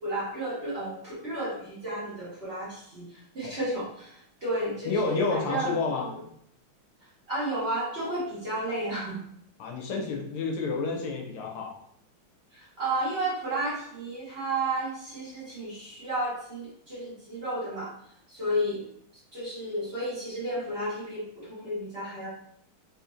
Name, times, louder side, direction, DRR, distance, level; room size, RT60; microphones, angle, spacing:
voice 1, 0.0-6.1 7.3-9.2 12.5-18.8 19.3-22.3, right 1 dB, 35° right, -10 dB, 1.5 m, -32 dB
voice 2, 4.8-6.1 9.6-11.7, left 4 dB, 90° left, 2 dB, 1.6 m, -29 dB
3.9 x 2.8 x 2.4 m, 0.69 s
omnidirectional pair, 2.3 m